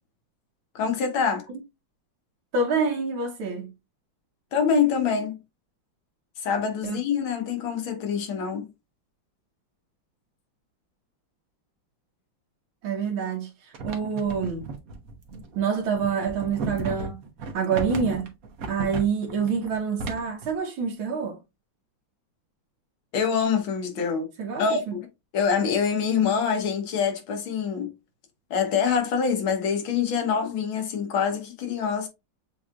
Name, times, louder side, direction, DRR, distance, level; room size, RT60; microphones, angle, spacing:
voice 1, 0.8-1.5 4.5-5.4 6.4-8.7 23.1-24.3 24.6-25.1 25.3-27.9 28.5-32.1, left 6 dB, 85° left, 1.9 m, -25 dB
voice 2, 2.5-3.7 6.8-7.0 12.8-14.7 15.5-17.2 17.5-18.3 18.7-21.4 24.4-24.8, right 5 dB, 85° right, 1.7 m, -27 dB
sound 1, 13.7-20.5, right 3 dB, 55° right, 1.1 m, -35 dB
7.1 x 2.8 x 2.4 m
omnidirectional pair, 2.1 m